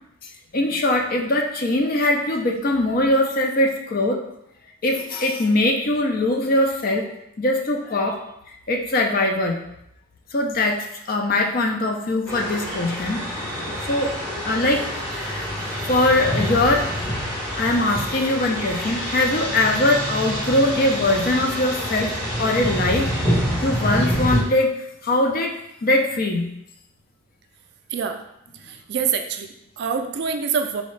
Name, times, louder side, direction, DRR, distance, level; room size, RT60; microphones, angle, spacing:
voice 1, 0.5-4.2 4.8-8.2 8.7-9.6 10.3-10.8 11.1-14.1 14.4-15.4 15.9-16.9 17.5-23.1 23.6-24.8 25.0-25.5 25.8-26.5, left 1 dB, 45° left, 2 dB, 0.5 m, -21 dB
sound 1, 12.3-24.4, equal, 5° left, 1.1 m, -27 dB
voice 2, 27.9-28.2 28.5-30.8, right 6 dB, 55° right, 6 dB, 0.3 m, -26 dB
4.2 x 2.8 x 3.1 m, 0.79 s
head